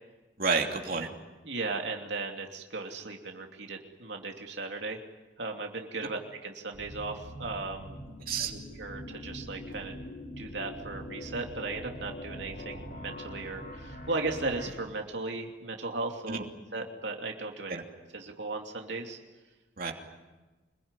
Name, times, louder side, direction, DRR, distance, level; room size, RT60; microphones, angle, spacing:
voice 1, 0.4-1.1 8.3-8.5 16.3-16.4 17.7-17.8 19.8-19.9, right 4 dB, 50° right, 2 dB, 3.0 m, -29 dB
voice 2, 1.4-5.0 5.4-8.0 8.4-10.0 10.4-16.4 16.7-17.8 18.1-19.2, right 3 dB, 80° right, 2 dB, 2.8 m, -36 dB
sound 1, 6.7-14.7, equal, 55° left, 5.2 m, -43 dB
26.0 x 22.0 x 9.9 m, 1.2 s
head